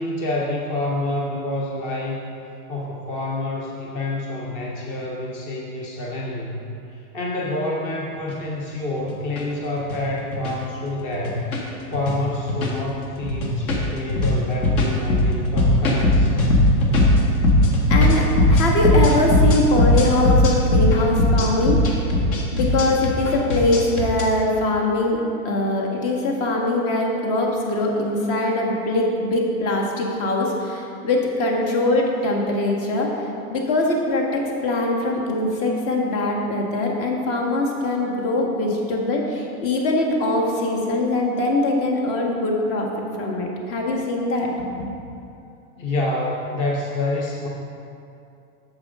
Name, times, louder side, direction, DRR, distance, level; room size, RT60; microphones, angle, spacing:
voice 1, 0.0-2.3 2.7-6.7 6.9-11.5 11.9-16.4 45.8-47.5, left 2 dB, 20° left, -2 dB, 0.4 m, -27 dB
sound 1, 8.2-8.3 9.0-9.4 9.8-10.0 10.3-10.5 11.1-11.6 11.9-12.2 12.5-12.9 13.2-24.2, left 1 dB, 65° left, 1.7 m, -18 dB
voice 2, 17.9-22.0 22.5-33.1 33.5-42.9 43.2-44.9, left 2 dB, 50° left, 0 dB, 1.6 m, -22 dB
9.8 x 7.1 x 3.7 m, 2.6 s
supercardioid pair, 160°, 44 cm